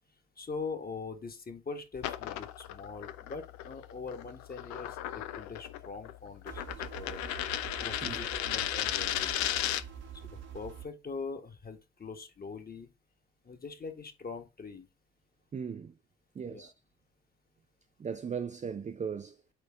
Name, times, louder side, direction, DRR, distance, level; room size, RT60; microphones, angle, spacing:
voice 1, 0.4-7.2 7.8-9.4 10.1-12.9 13.4-14.9 16.5-16.7, left 4 dB, 30° left, 1.6 m, -42 dB
sound 1, 2.0-10.0, left 13 dB, 65° left, 0.7 m, -36 dB
sound 2, 6.5-10.9, right 9 dB, 60° right, 1.4 m, -46 dB
voice 2, 15.5-16.0 16.3-16.7 18.0-19.4, right 6 dB, 25° right, 0.5 m, -37 dB
8.3 x 3.4 x 3.6 m
figure-of-eight pair, 50°, 31 cm